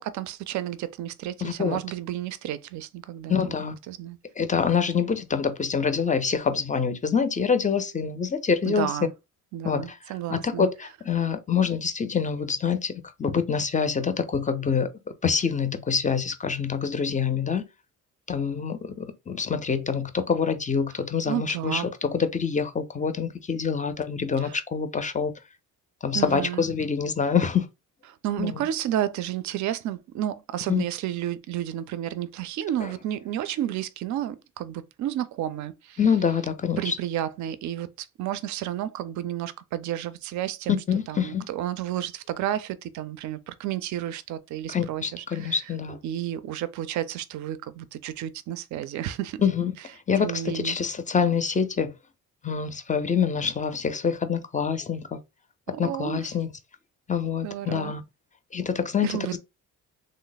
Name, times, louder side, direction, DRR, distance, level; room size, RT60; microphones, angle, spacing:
voice 1, 0.0-3.6 3.9-4.2 8.6-9.1 9.5-10.6 21.3-21.9 24.4-24.6 26.1-26.6 28.2-36.0 36.8-40.8 41.1-45.6 46.0-49.4 50.2-50.8 55.7-56.3 57.4-57.9 59.0-59.4, right 11 dB, 65° right, 0.4 m, -31 dB
voice 2, 1.4-1.8 3.3-3.8 4.4-8.9 9.6-10.0 10.3-14.9 15.2-17.6 18.3-25.3 26.0-27.7 28.4-28.5 30.7-30.8 36.0-36.9 40.9-41.5 44.7-46.0 49.4-49.7 50.1-51.9 52.4-55.2 55.8-56.5 57.1-58.0 58.5-59.4, left 6 dB, 25° left, 0.4 m, -26 dB
3.1 x 2.0 x 3.9 m
cardioid pair, 110°, 32 cm